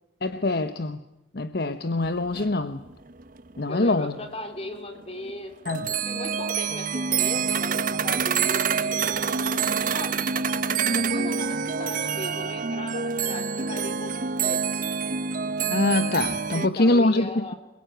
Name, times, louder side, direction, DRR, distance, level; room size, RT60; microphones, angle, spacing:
voice 1, 0.2-1.0 1.3-2.8 3.6-4.1 5.7-5.9 15.7-17.3, left 2 dB, 55° left, 0.9 m, -24 dB
sound 1, 2.0-2.1 2.3-4.3 4.6-4.8 5.2-5.3 5.6-16.7, right 6 dB, 45° right, 0.9 m, -27 dB
voice 2, 3.7-5.8 6.1-9.4 9.8-10.6 10.9-14.8 16.5-17.6, left 1 dB, 30° left, 3.4 m, -38 dB
26.0 x 22.0 x 9.2 m
head